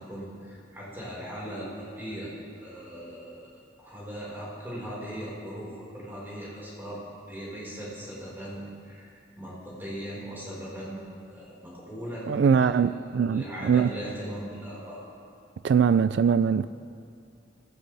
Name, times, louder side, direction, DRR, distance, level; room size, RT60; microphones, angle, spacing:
voice 1, 0.0-3.5 3.8-7.0 7.3-12.7 13.1-15.0, equal, 10° right, 4.7 m, -39 dB
voice 2, 12.3-13.9 15.6-16.7, right 6 dB, 75° right, 0.3 m, -22 dB
22.0 x 15.5 x 3.4 m
head